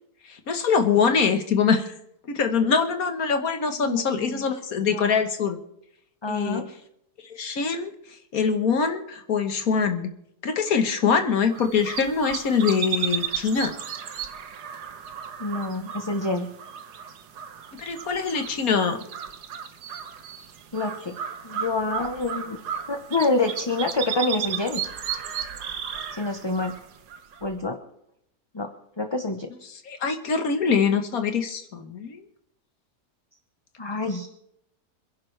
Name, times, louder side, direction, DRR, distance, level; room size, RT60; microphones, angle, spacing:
voice 1, 0.3-1.9 2.3-5.6 6.3-6.7 7.3-7.9 8.3-10.1 10.4-13.7 17.8-19.0 29.9-32.2, left 5 dB, 60° left, 7 dB, 1.8 m, -23 dB
voice 2, 3.8-4.4 4.9-5.2 6.2-6.7 15.4-16.5 20.7-21.2 21.4-22.6 22.9-24.8 26.2-26.8 27.4-27.8 28.5-28.7 29.0-29.5 33.8-34.3, left 2 dB, 20° left, 5 dB, 0.9 m, -27 dB
sound 1, 11.5-27.6, right 8 dB, 80° right, 1.6 m, -34 dB
27.0 x 10.5 x 3.4 m, 0.76 s
omnidirectional pair, 1.7 m